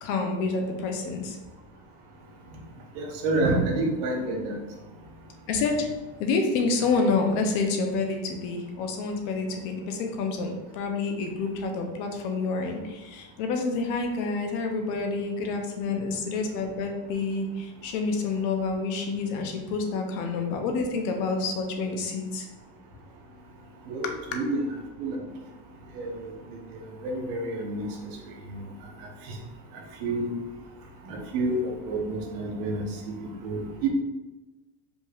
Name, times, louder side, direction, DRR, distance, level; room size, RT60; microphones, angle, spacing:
voice 1, 0.0-1.4 5.5-5.9 6.2-22.5 24.0-24.1, left 4 dB, 55° left, 4 dB, 0.6 m, -28 dB
voice 2, 2.9-4.6 23.9-24.6 25.0-25.2 25.9-26.3 26.7-27.9 28.5-28.6 29.2-29.4 30.0-30.3 31.0-33.1 33.4-33.9, right 2 dB, 60° right, 1 dB, 0.9 m, -29 dB
5.1 x 3.4 x 2.4 m, 1.1 s
cardioid pair, 180°, 33 cm